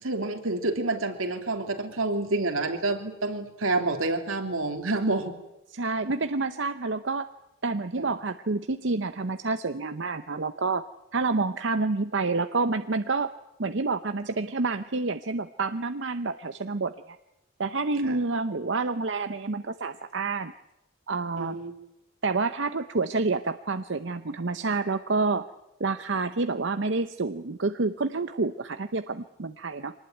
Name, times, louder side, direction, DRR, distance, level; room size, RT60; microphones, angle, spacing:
voice 1, 0.0-5.3 8.0-8.1 18.0-18.2 21.4-21.7, right 2 dB, 85° right, 5 dB, 3.0 m, -28 dB
voice 2, 5.7-7.3 7.6-10.8 11.1-13.3 13.6-17.2 17.6-20.5 21.1-21.6 22.2-25.5 25.8-29.9, right 3 dB, 65° right, 10 dB, 0.8 m, -28 dB
24.0 x 19.5 x 9.2 m, 0.92 s
head